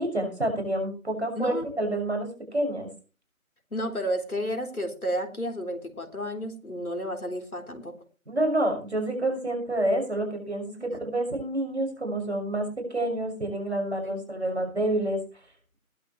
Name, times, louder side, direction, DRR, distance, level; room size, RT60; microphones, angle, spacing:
voice 1, 0.0-2.9 8.3-15.2, right 1 dB, 50° right, 3 dB, 6.1 m, -28 dB
voice 2, 1.3-1.7 3.7-7.9 10.9-11.0 14.0-14.2, equal, 85° left, 4 dB, 3.8 m, -31 dB
20.0 x 8.9 x 3.2 m, 0.35 s
figure-of-eight pair, 175°, 43 cm